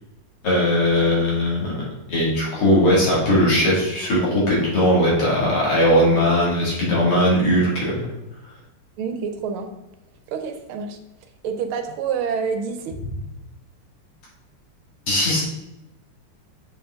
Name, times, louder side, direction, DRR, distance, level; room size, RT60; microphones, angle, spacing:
voice 1, 0.4-8.0 15.1-15.4, left 1 dB, 85° left, -6 dB, 3.4 m, -19 dB
voice 2, 9.0-9.7 10.3-11.0 11.4-12.9, right 6 dB, 75° right, 7 dB, 1.6 m, -27 dB
6.9 x 4.8 x 3.7 m, 0.97 s
omnidirectional pair, 2.4 m